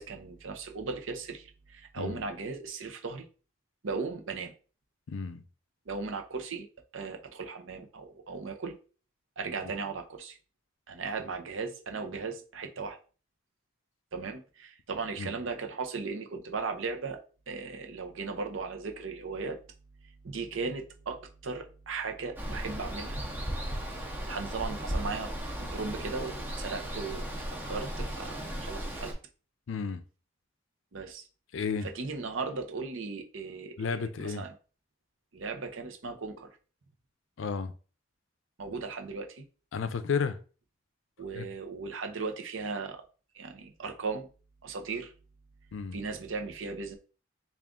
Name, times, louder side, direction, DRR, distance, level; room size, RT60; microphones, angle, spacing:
voice 1, 0.0-3.3 3.8-4.5 5.9-6.7 6.9-8.7 9.4-10.4 10.9-13.0 14.1-17.2 17.5-19.6 20.2-23.2 24.0-25.3 25.6-29.2 30.9-31.3 31.8-34.5 35.3-36.6 38.6-39.4 41.2-43.0 43.3-44.3 44.6-45.1 45.9-46.9, right 4 dB, 90° right, 0.7 m, -37 dB
voice 2, 5.1-5.4 15.2-15.3 29.7-30.0 31.5-31.9 33.8-34.4 37.4-37.7 39.7-40.4 41.3-41.4 45.7-46.0, left 5 dB, 85° left, 0.4 m, -32 dB
Water, 22.4-29.1, equal, 10° right, 0.6 m, -36 dB
3.5 x 2.4 x 3.6 m
head